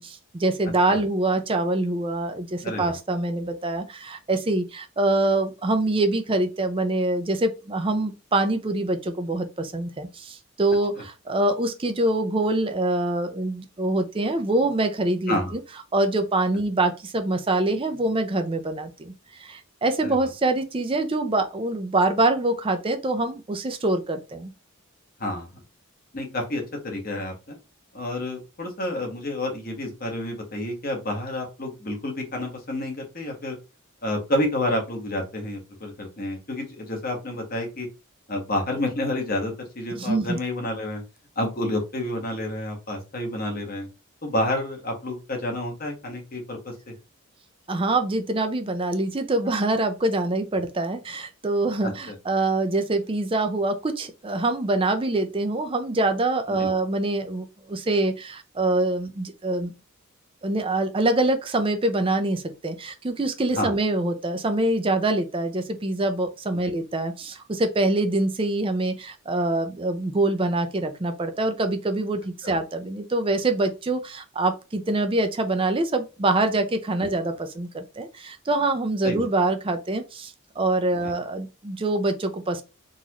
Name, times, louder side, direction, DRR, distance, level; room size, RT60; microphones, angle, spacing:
voice 1, 0.0-15.6 15.9-24.5 40.0-40.4 47.7-59.7 60.4-82.6, right 2 dB, 25° right, 0.5 m, -25 dB
voice 2, 2.6-2.9 10.9-11.0 15.3-15.5 20.0-20.3 25.2-25.6 26.1-27.5 27.9-33.6 34.0-37.9 38.3-41.0 41.4-43.9 44.2-46.7 51.8-52.1 56.6-56.7 63.5-63.7 72.4-72.5 77.0-77.1 79.0-79.3 81.0-81.1, left 1 dB, 45° left, 1.2 m, -29 dB
4.0 x 2.5 x 2.9 m
head